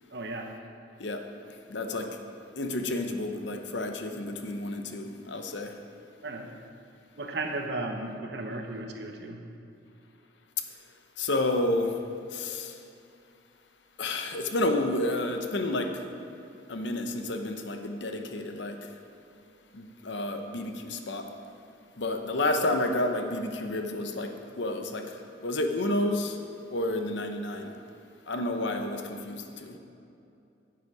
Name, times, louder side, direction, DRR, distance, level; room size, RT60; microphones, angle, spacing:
voice 1, 0.1-0.5 6.2-6.5 7.2-9.4, right 2 dB, 60° right, 4 dB, 1.0 m, -35 dB
voice 2, 1.0-2.1 2.6-5.7 11.2-12.0 12.3-12.8 14.0-16.0 16.7-18.8 19.7-21.3 22.0-26.4 26.7-27.7 28.3-29.8, left 1 dB, 65° left, 5 dB, 0.8 m, -30 dB
11.0 x 8.0 x 4.9 m, 2.6 s
head